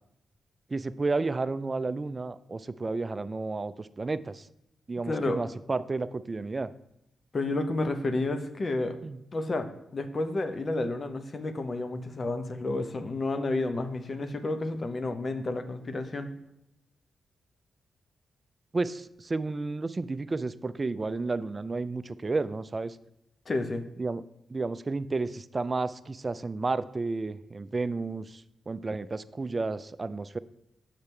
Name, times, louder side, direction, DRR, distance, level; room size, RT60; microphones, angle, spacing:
voice 1, 0.7-4.5 4.9-6.7 9.0-9.2 18.7-23.0 24.0-24.2 24.5-30.4, right 3 dB, 35° right, 14 dB, 0.4 m, -32 dB
voice 2, 5.1-5.4 7.3-9.0 9.3-16.3 23.5-23.8, left 2 dB, 45° left, 8 dB, 0.8 m, -31 dB
6.8 x 5.7 x 3.3 m, 0.80 s
supercardioid pair, 55°, 0 cm